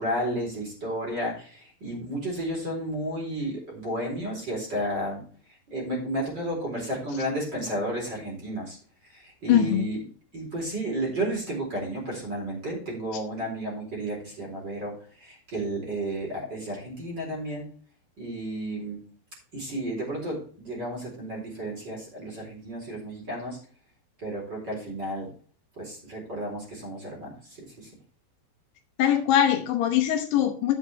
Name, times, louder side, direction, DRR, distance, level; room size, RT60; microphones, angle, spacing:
voice 1, 0.0-5.2 5.7-8.8 9.1-10.0 10.3-17.7 18.2-19.0 19.5-23.6 24.2-25.3 25.8-27.9, right 1 dB, 25° right, -2 dB, 4.4 m, -32 dB
voice 2, 9.5-9.9 29.0-30.8, left 10 dB, 75° left, 5 dB, 3.0 m, -22 dB
11.5 x 7.8 x 3.4 m, 0.41 s
omnidirectional pair, 5.0 m